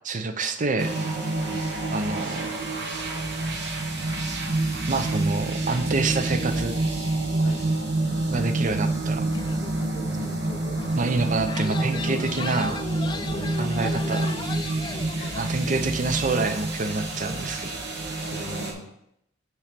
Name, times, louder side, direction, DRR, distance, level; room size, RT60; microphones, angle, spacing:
voice 1, 0.0-0.9 1.9-2.5 4.3-4.4 4.9-6.8 8.3-9.3 11.0-12.8 13.6-14.3 15.4-17.7, right 3 dB, 40° right, 8 dB, 0.6 m, -27 dB
sound 1, 0.8-18.7, right 2 dB, 60° right, 1.2 m, -28 dB
voice 2, 7.4-8.1 10.2-10.4 13.3-13.5 15.2-15.8 18.3-18.9, left 2 dB, 50° left, 4 dB, 1.0 m, -40 dB
sound 2, 9.3-15.5, left 3 dB, 25° left, 0.3 m, -37 dB
8.5 x 3.2 x 5.1 m, 0.79 s
head